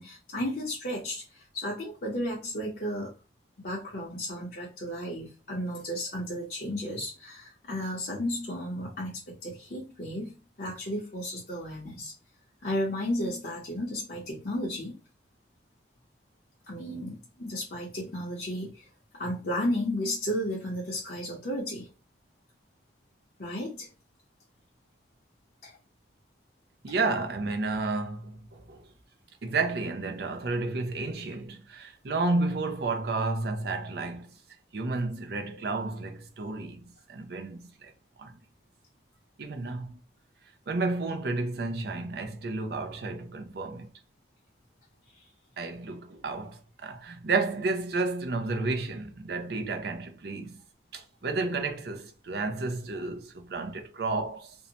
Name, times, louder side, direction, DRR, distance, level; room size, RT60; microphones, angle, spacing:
voice 1, 0.0-3.1 3.6-12.1 12.6-15.0 16.7-18.9 19.1-21.9 23.4-23.9 25.6-25.8, left 1 dB, 50° left, 0.7 m, -33 dB
voice 2, 26.8-28.8 29.4-34.3 34.7-37.9 38.2-38.4 39.4-39.9 40.7-43.9 45.6-50.6 50.9-54.6, right 3 dB, 55° right, 0.5 m, -31 dB
2.6 x 2.1 x 2.7 m
head